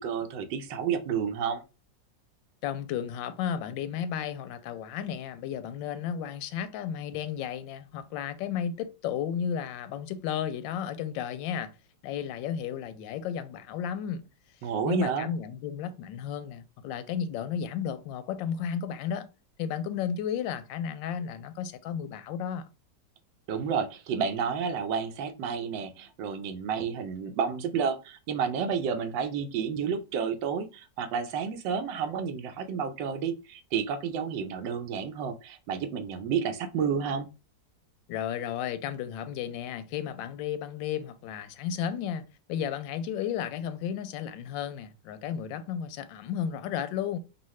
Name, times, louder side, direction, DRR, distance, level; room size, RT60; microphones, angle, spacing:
voice 1, 0.0-1.6 14.6-15.3 23.5-37.3, right 6 dB, 90° right, 1.4 m, -30 dB
voice 2, 2.6-11.7 12.0-14.2 14.8-19.3 19.6-22.7 38.1-47.2, left 8 dB, 90° left, 1.3 m, -33 dB
5.6 x 2.4 x 3.1 m
omnidirectional pair, 2.0 m